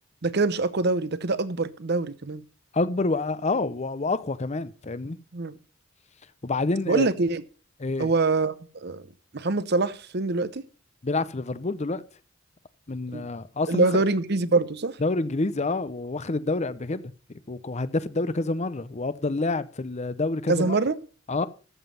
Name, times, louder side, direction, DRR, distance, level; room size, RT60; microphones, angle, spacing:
voice 1, 0.2-2.4 5.3-5.6 6.9-7.4 8.0-8.5 8.8-9.1 9.3-10.6 13.1-13.2 13.7-15.0 20.5-20.9, right 3 dB, 55° right, 0.8 m, -24 dB
voice 2, 2.7-5.2 6.4-7.1 7.8-8.1 11.0-12.0 12.9-14.0 15.0-17.1 17.5-20.8 21.3-21.5, left 3 dB, 35° left, 0.7 m, -28 dB
13.5 x 7.4 x 5.6 m
head